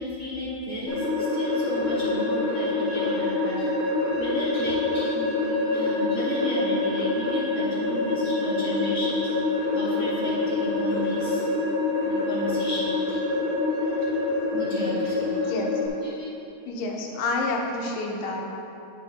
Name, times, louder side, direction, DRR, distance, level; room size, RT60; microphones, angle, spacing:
voice 1, 0.0-3.7 4.2-11.4 11.8-13.2 13.6-14.2 14.5-15.6 16.0-16.2, left 1 dB, 65° right, -12 dB, 0.7 m, -34 dB
sound 1, 0.9-15.9, left 2 dB, 60° left, 3.0 m, -26 dB
voice 2, 16.7-18.4, left 2 dB, 80° left, 0 dB, 2.6 m, -28 dB
10.5 x 7.5 x 2.9 m, 2.8 s
omnidirectional pair, 4.0 m